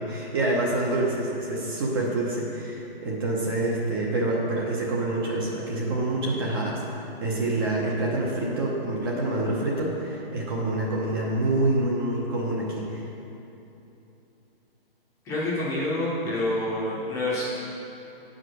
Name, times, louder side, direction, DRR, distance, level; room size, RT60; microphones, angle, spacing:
voice 1, 0.1-13.0, right 2 dB, 25° right, -3 dB, 0.8 m, -27 dB
voice 2, 15.2-17.5, left 1 dB, 10° left, -8 dB, 0.9 m, -27 dB
8.1 x 5.0 x 6.2 m, 2.9 s
hypercardioid pair, 165°, 30 cm